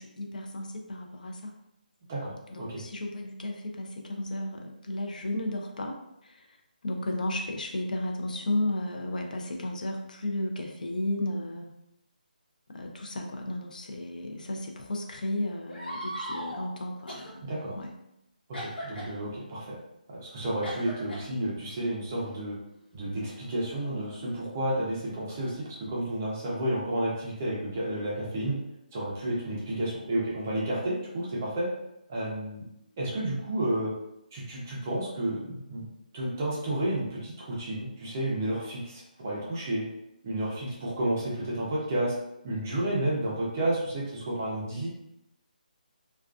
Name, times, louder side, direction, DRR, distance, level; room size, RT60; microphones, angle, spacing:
voice 1, 0.0-1.5 2.5-6.0 6.2-6.5 6.8-11.7 12.7-17.5 17.7-17.9, left 1 dB, 60° left, 2 dB, 0.4 m, -33 dB
voice 2, 2.1-2.8 17.4-17.7 18.5-19.7 20.1-22.6 22.9-28.6 28.9-31.7 32.1-32.6 33.0-33.9 34.3-35.8 36.1-39.8 40.2-42.1 42.4-44.9, right 1 dB, 20° right, -5 dB, 0.4 m, -31 dB
sound 1, 15.7-16.7 17.1-17.3 18.5-19.1 20.6-21.2 22.2-22.4 23.3-24.5, right 1 dB, 85° left, 1.0 m, -39 dB
2.3 x 2.2 x 2.3 m, 0.84 s
hypercardioid pair, 175°, 5 cm